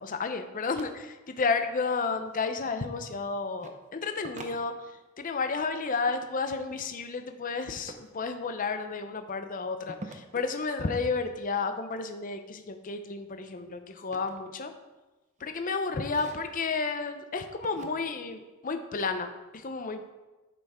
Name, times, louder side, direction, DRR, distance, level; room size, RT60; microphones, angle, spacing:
voice 1, 0.0-14.7 15.4-20.1, left 4 dB, 40° left, 7 dB, 0.6 m, -32 dB
sound 1, 0.7-0.9 2.2-2.7 3.6-3.8 4.2-5.2 7.4-8.1 9.9-10.5 12.4-12.7 13.1-15.0 15.4-15.6 16.0-16.7 17.6-17.9, right 2 dB, 35° right, 0.8 m, -47 dB
10.5 x 5.7 x 4.3 m, 1.1 s
head